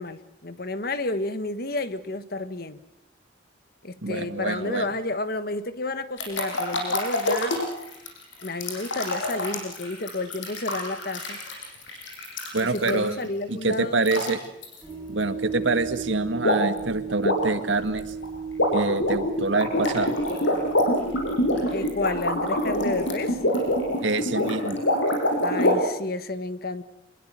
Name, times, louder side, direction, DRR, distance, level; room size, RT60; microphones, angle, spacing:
voice 1, 0.0-2.8 3.8-7.6 8.4-11.4 12.6-14.0 21.7-23.4 25.4-26.8, left 2 dB, 55° left, 12 dB, 1.5 m, -31 dB
voice 2, 4.0-4.9 12.5-13.2 13.5-14.4 15.1-18.0 18.7-20.1 24.0-24.8, right 3 dB, 85° right, 9 dB, 1.9 m, -26 dB
sound 1, 6.2-13.2 14.0-14.3 14.6-14.8 16.4-16.8 17.1-25.7, left 1 dB, 85° left, 7.3 m, -26 dB
sound 2, 14.8-23.9, right 6 dB, ahead, 5.8 m, -36 dB
27.0 x 22.0 x 7.6 m, 0.88 s
head